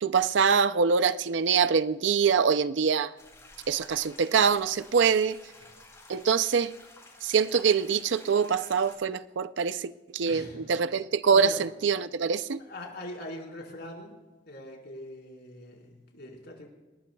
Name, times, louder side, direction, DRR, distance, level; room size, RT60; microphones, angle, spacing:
voice 1, 0.0-3.1 3.7-5.4 6.1-6.7 7.2-12.6, right 6 dB, 70° right, 0.5 m, -24 dB
sound 1, 3.2-8.9, left 2 dB, 15° left, 5.9 m, -52 dB
voice 2, 10.2-10.7 11.3-11.6 12.6-14.2 14.5-16.7, left 1 dB, 60° left, 4.5 m, -42 dB
27.5 x 19.0 x 2.3 m
head